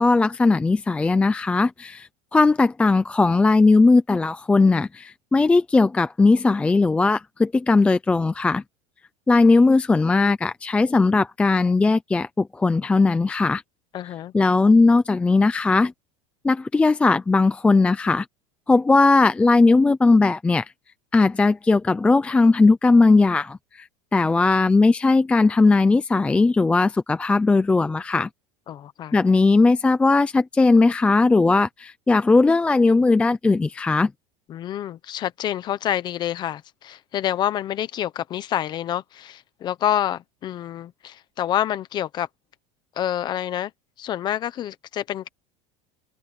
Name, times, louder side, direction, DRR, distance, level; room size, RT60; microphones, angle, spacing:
voice 1, 0.0-8.6 9.3-13.6 14.3-15.9 16.4-18.3 18.7-20.7 21.1-28.3 29.1-34.1, left 3 dB, 5° left, 0.5 m, -18 dB
voice 2, 13.9-14.3 28.7-29.2 34.5-42.3 43.0-43.7 44.0-45.3, left 11 dB, 25° left, 0.9 m, -27 dB
cardioid pair, 170°, 16 cm